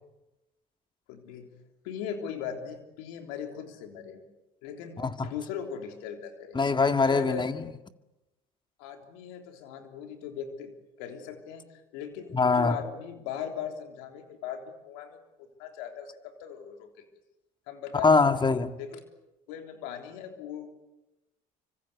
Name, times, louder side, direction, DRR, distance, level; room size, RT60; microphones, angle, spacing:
voice 1, 1.1-1.5 1.8-4.2 4.6-6.6 7.0-7.6 8.8-15.2 15.6-17.0 17.7-18.1 18.8-19.0 19.5-20.7, left 8 dB, 85° left, 3.4 m, -39 dB
voice 2, 5.0-5.3 6.5-7.6 12.3-12.8 18.0-18.8, left 4 dB, 25° left, 1.9 m, -23 dB
25.5 x 25.0 x 8.3 m
supercardioid pair, 70°, 18 cm